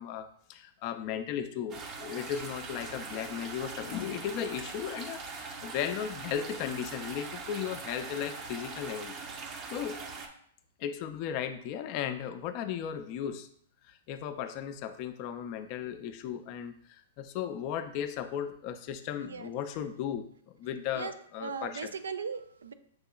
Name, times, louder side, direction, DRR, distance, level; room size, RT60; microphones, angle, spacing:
voice 1, 0.0-9.2 9.7-10.0 10.8-13.5 13.8-21.9, left 9 dB, 45° left, 9 dB, 0.4 m, -36 dB
sound 1, 1.7-10.3, right 4 dB, 30° right, 0.6 m, -42 dB
voice 2, 19.2-19.5 20.9-21.1 21.4-22.7, right 5 dB, 85° right, 10 dB, 0.4 m, -38 dB
6.2 x 2.8 x 2.3 m, 0.63 s
hypercardioid pair, 120°, 0 cm